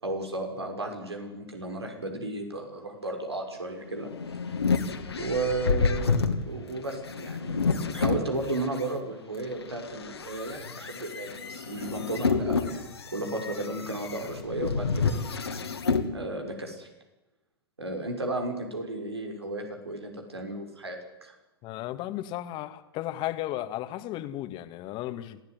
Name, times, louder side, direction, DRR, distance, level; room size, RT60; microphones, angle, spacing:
voice 1, 0.0-4.1 5.2-15.2 16.1-16.9 17.8-21.4, right 2 dB, 85° right, 4 dB, 6.1 m, -34 dB
sound 1, 3.8-8.9 9.4-16.1, left 4 dB, 85° left, 2.8 m, -29 dB
voice 2, 21.6-25.4, left 14 dB, 35° left, 10 dB, 2.0 m, -34 dB
26.5 x 16.0 x 9.7 m, 1.0 s
figure-of-eight pair, 105°, 13 cm